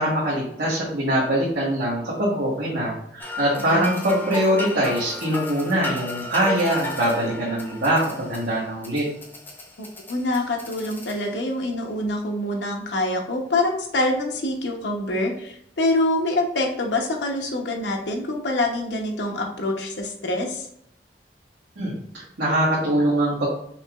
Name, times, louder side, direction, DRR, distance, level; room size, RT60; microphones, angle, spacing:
voice 1, 0.0-9.0 21.8-23.5, right 1 dB, 90° right, -9 dB, 1.3 m, -23 dB
sound 1, 3.2-11.6, left 1 dB, 10° left, 0.5 m, -35 dB
voice 2, 10.1-20.7, left 2 dB, 90° left, 1 dB, 0.8 m, -25 dB
5.7 x 2.9 x 2.4 m, 0.71 s
head